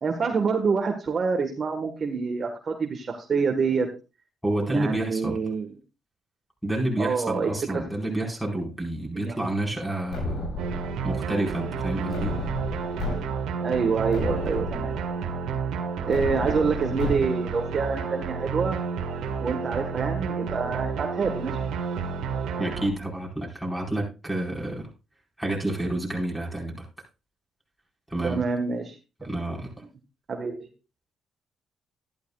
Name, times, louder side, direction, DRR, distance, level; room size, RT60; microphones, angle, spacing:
voice 1, 0.0-3.9 4.7-5.7 7.0-7.8 9.1-9.4 13.6-15.3 16.0-18.8 19.4-21.6 28.2-28.9 29.2-29.3 30.3-30.7, right 5 dB, 45° right, 4 dB, 1.4 m, -27 dB
voice 2, 4.4-5.4 6.6-10.4 11.0-12.4 22.6-24.9 25.4-26.8 28.1-28.4 29.2-29.7, right 1 dB, ahead, -3 dB, 4.6 m, -29 dB
sound 1, 10.1-11.1 12.1-13.1 13.6-13.7 14.1-15.1 16.1-17.1, left 2 dB, 75° left, 7.2 m, -32 dB
sound 2, 10.6-22.9, right 5 dB, 85° right, 1.7 m, -31 dB
13.0 x 11.5 x 2.4 m, 0.29 s
cardioid pair, 90°, 0 cm